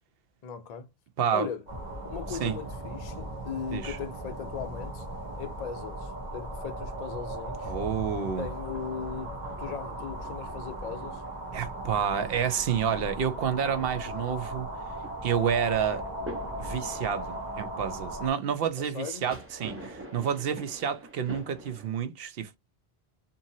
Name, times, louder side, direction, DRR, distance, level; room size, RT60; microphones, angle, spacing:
voice 1, 0.4-0.9 1.3-1.6 2.0-5.1 5.4-7.8 8.4-11.2 18.8-19.2, left 7 dB, 50° left, 0.6 m, -38 dB
voice 2, 1.2-1.5 2.3-2.5 3.7-4.0 7.7-8.5 11.5-14.7 15.2-16.0 16.6-22.6, right 8 dB, 70° right, 0.8 m, -29 dB
sound 1, 1.7-18.3, right 1 dB, 45° right, 1.1 m, -38 dB
sound 2, 8.1-21.9, right 1 dB, 15° right, 0.8 m, -48 dB
2.7 x 2.6 x 2.7 m
omnidirectional pair, 1.1 m